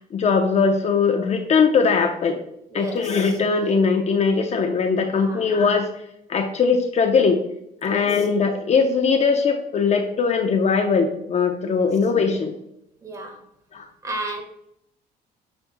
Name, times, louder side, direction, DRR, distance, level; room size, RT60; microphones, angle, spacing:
voice 1, 0.0-2.4 2.7-5.9 6.3-7.4 7.8-12.5 13.7-13.9, left 5 dB, 40° left, 0.8 m, -20 dB
voice 2, 2.7-3.4 5.0-5.5 7.8-8.2 11.7-11.9 13.0-13.4 14.0-14.4, right 2 dB, 20° right, 1.5 m, -34 dB
7.1 x 6.8 x 2.3 m
cardioid pair, 110°, 17 cm